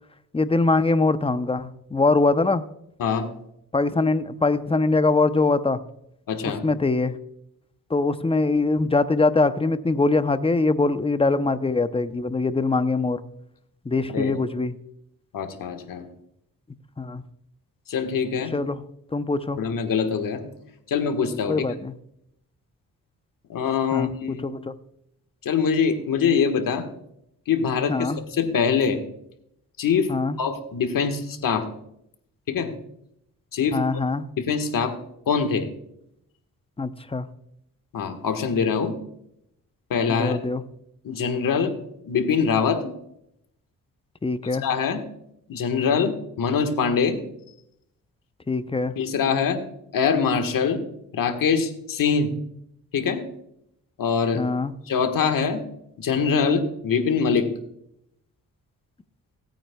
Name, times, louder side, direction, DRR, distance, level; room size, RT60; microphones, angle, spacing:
voice 1, 0.3-2.6 3.7-5.8 6.4-7.1 7.9-13.2 13.8-14.8 17.0-17.2 18.5-18.8 19.1-19.6 21.5-21.9 23.9-24.7 27.9-28.2 30.1-30.4 33.7-34.2 36.8-37.3 40.1-40.6 44.2-44.7 48.5-48.9 54.4-54.7, left 3 dB, 15° left, 12 dB, 0.7 m, -23 dB
voice 2, 6.3-6.6 14.1-14.3 15.3-16.0 17.9-18.5 19.6-20.4 20.9-21.6 23.5-24.4 25.4-26.8 27.5-29.0 29.8-30.1 30.4-31.7 32.5-32.7 33.5-33.8 34.4-34.9 35.3-35.7 37.9-39.0 39.9-40.4 41.0-41.7 42.0-42.8 44.6-45.0 45.5-47.2 49.0-49.6 49.9-50.8 51.1-52.3 52.9-53.2 54.0-54.4 54.9-55.6 56.0-57.5, left 6 dB, 70° left, 6 dB, 1.5 m, -23 dB
17.0 x 9.0 x 2.3 m, 0.76 s
cardioid pair, 75°, 34 cm